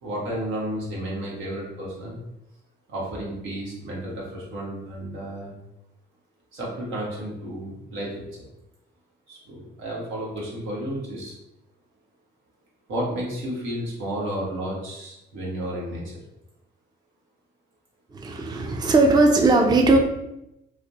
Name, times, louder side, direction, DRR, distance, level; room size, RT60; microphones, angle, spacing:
voice 1, 0.0-2.2 2.9-5.5 6.5-8.5 9.3-11.3 12.9-16.2, right 1 dB, 85° right, -4 dB, 1.2 m, -32 dB
voice 2, 18.1-20.0, right 2 dB, 20° right, 2 dB, 0.4 m, -18 dB
3.1 x 2.2 x 3.9 m, 0.87 s
cardioid pair, 90°, 20 cm